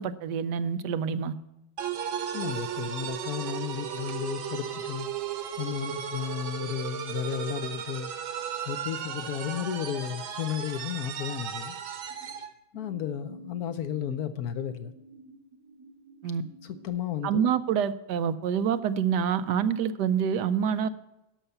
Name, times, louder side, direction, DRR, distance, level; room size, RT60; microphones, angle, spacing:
voice 1, 0.0-1.3 16.2-16.4 17.2-20.9, right 7 dB, 70° right, 11 dB, 1.1 m, -27 dB
sound 1, 1.8-12.5, right 8 dB, 85° right, 1.8 m, -35 dB
voice 2, 2.3-5.1 5.6-8.1 8.7-11.7 12.7-14.9 16.6-17.4, left 9 dB, 65° left, 10 dB, 0.9 m, -33 dB
sound 2, 9.1-9.6 11.4-12.4 12.7-16.9, right 3 dB, 50° right, 2.5 m, -51 dB
12.5 x 5.7 x 6.8 m, 0.93 s
omnidirectional pair, 2.1 m